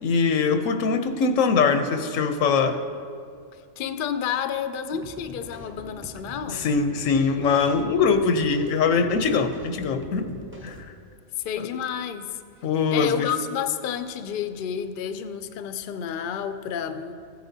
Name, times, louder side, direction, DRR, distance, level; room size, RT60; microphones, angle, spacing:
voice 1, 0.0-2.8 6.5-10.3 10.6-10.8 12.6-13.3, left 5 dB, 90° left, 8 dB, 1.1 m, -22 dB
voice 2, 3.8-6.6 11.4-12.4 12.9-17.1, left 8 dB, 60° left, 9 dB, 0.6 m, -30 dB
sound 1, 4.9-10.9, equal, 10° right, 0.6 m, -43 dB
15.5 x 9.5 x 2.7 m, 2.2 s
omnidirectional pair, 1.3 m